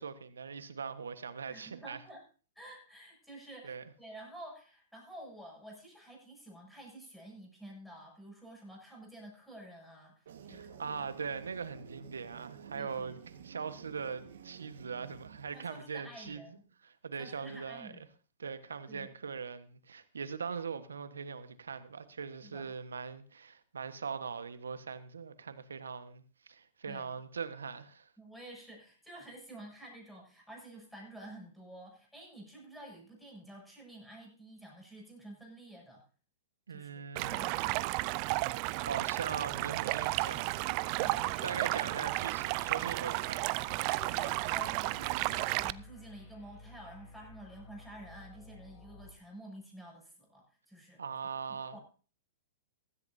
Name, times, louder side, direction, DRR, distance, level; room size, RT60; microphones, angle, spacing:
voice 1, 0.0-2.0 3.6-3.8 10.5-13.2 13.4-16.4 16.8-17.9 18.4-26.2 26.5-28.1 36.7-37.6 38.8-40.7 40.9-41.2 41.4-43.5 51.0-51.8, right 6 dB, 90° right, 1.3 m, -41 dB
voice 2, 1.5-2.2 2.6-10.8 12.7-13.1 15.5-16.6 17.2-18.1 18.9-19.1 22.4-22.7 26.8-27.2 28.2-36.0 36.7-38.2 41.0-41.8 43.9-51.0 51.5-51.8, right 1 dB, ahead, 7.3 m, -50 dB
sound 1, 10.3-15.8, right 8 dB, 70° right, 1.6 m, -52 dB
Stream, 37.2-45.7, right 21 dB, 45° right, 0.5 m, -33 dB
sound 2, 43.6-49.1, left 2 dB, 35° left, 3.5 m, -54 dB
16.0 x 14.5 x 2.7 m
hypercardioid pair, 125°, 0 cm